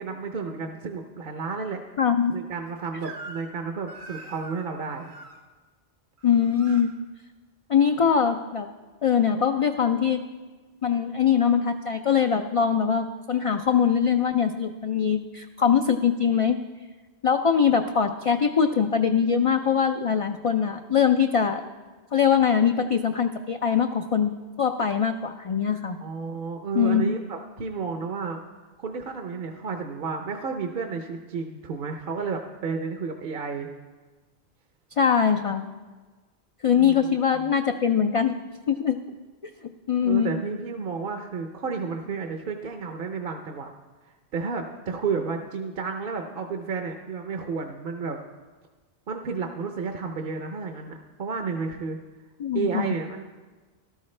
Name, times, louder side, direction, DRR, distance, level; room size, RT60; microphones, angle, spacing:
voice 1, 0.0-1.8 2.3-5.1 26.0-28.4 28.8-33.7 36.8-37.5 40.0-43.7 44.3-48.2 49.1-52.0 52.5-53.2, right 5 dB, 60° right, 4 dB, 0.8 m, -31 dB
voice 2, 2.0-2.3 6.2-6.9 7.7-8.7 9.0-10.2 10.8-16.6 17.2-21.6 22.1-24.3 24.6-26.0 26.7-27.1 35.0-35.6 36.6-38.4 38.7-39.0 39.9-40.3 52.4-52.9, left 7 dB, 50° left, 6 dB, 0.4 m, -22 dB
Crying sobbing / Screech, 3.0-3.6 3.9-5.4 6.2-6.9, right 3 dB, 85° right, 1.3 m, -43 dB
13.5 x 12.5 x 3.2 m, 1.3 s
omnidirectional pair, 1.0 m